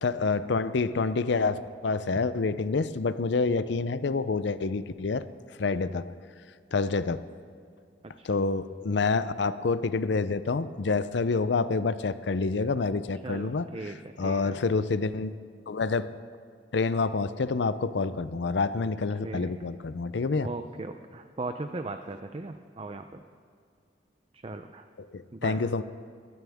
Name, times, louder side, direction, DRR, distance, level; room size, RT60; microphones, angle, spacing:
voice 1, 0.0-5.3 5.6-6.1 6.7-7.3 8.2-13.7 14.2-15.3 15.7-16.2 16.7-20.5 25.1-25.8, left 4 dB, 65° left, 14 dB, 0.5 m, -27 dB
voice 2, 8.0-8.4 13.2-14.6 19.2-19.5 20.4-23.2 24.3-24.9 25.3-25.6, right 3 dB, 30° right, 7 dB, 0.5 m, -38 dB
22.0 x 13.0 x 3.5 m, 2.3 s
head